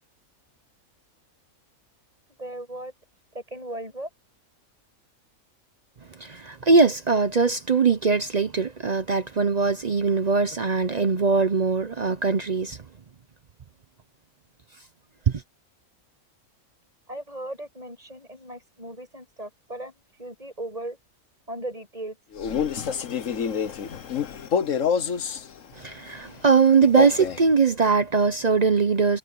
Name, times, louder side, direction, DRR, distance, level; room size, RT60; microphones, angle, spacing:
voice 1, 2.4-2.9 3.3-4.1 17.1-21.0 21.5-22.2, right 1 dB, 25° right, 8.0 m, -37 dB
voice 2, 6.2-12.8 15.3-15.4 25.8-29.2, right 4 dB, 40° right, 0.6 m, -21 dB
Male speech man speaking, 22.3-25.5 26.8-27.5, left 7 dB, 65° left, 1.5 m, -27 dB
omnidirectional pair, 1.5 m